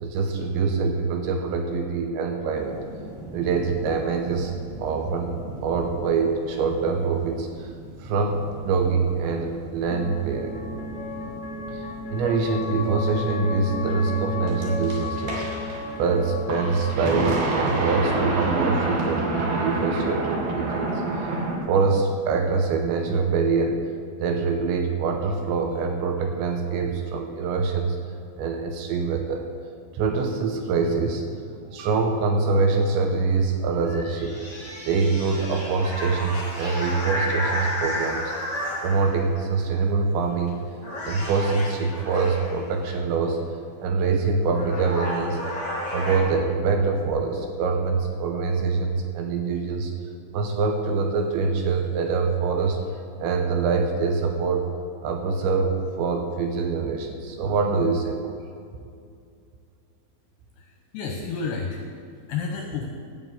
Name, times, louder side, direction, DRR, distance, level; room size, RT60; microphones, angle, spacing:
voice 1, 0.0-2.8 3.3-4.5 4.8-5.3 5.6-7.7 8.0-10.6 11.7-20.9 21.2-21.4 21.7-23.8 24.2-28.0 28.4-29.5 29.9-31.3 31.7-34.4 34.9-38.3 38.8-40.6 41.1-43.4 43.8-45.4 45.9-49.9 50.3-52.8 53.2-54.7 55.0-58.4, right 4 dB, 80° right, 4 dB, 2.9 m, -24 dB
sound 1, 2.5-21.6, right 2 dB, 60° right, 3.5 m, -31 dB
sound 2, 8.5-18.7, left 3 dB, 35° left, 0.7 m, -35 dB
sound 3, 33.8-39.4 40.2-40.5 40.8-42.6 44.0-44.1 44.5-46.2, equal, 15° left, 1.7 m, -32 dB
voice 2, 60.6-62.0 62.3-62.9, left 5 dB, 75° left, 2 dB, 2.5 m, -31 dB
14.0 x 5.8 x 8.1 m, 2.3 s
omnidirectional pair, 5.7 m